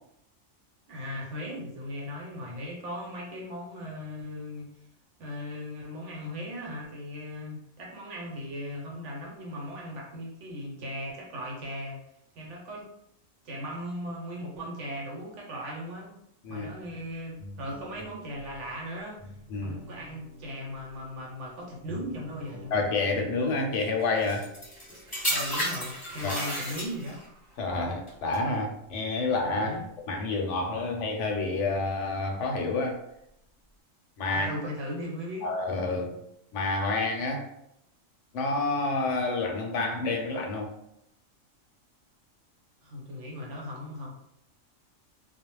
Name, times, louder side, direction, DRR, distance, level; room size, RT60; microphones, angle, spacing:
voice 1, 0.9-4.7 5.2-12.0 12.3-12.9 13.4-16.1 16.5-19.3 19.6-22.7 25.3-27.2 29.5-29.8 34.3-35.5 42.8-44.1, equal, 70° right, -1 dB, 1.0 m, -38 dB
sound 1, 16.8-26.5 26.9-27.1 27.6-28.6 28.9-29.1 30.8-31.9, left 2 dB, 40° right, 0.4 m, -50 dB
voice 2, 22.7-24.5 26.2-26.5 27.6-33.0 34.2-34.5 35.4-36.2 36.5-37.5 38.3-40.7, left 3 dB, 70° left, 2 dB, 0.9 m, -29 dB
sound 2, 24.2-27.3 28.1-28.4, equal, 20° left, 0.8 m, -32 dB
2.3 x 2.0 x 3.1 m, 0.77 s
omnidirectional pair, 1.4 m